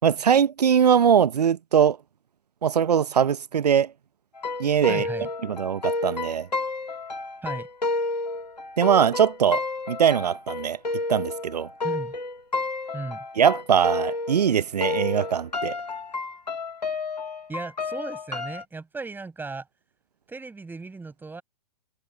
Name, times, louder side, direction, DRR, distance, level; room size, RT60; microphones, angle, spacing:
voice 1, 0.0-2.0 2.6-3.9 4.6-5.1 5.4-6.5 8.8-9.6 9.9-10.8 11.1-11.7 13.4-15.8, right 8 dB, 75° right, 1.0 m, -21 dB
sound 1, 4.4-14.5 14.8-18.6, left 3 dB, 85° left, 2.2 m, -30 dB
voice 2, 4.9-5.3 7.4-7.7 11.8-12.1 12.9-13.3 17.5-19.7 20.3-21.4, right 3 dB, 10° right, 6.9 m, -36 dB
figure-of-eight pair, 110°, 21 cm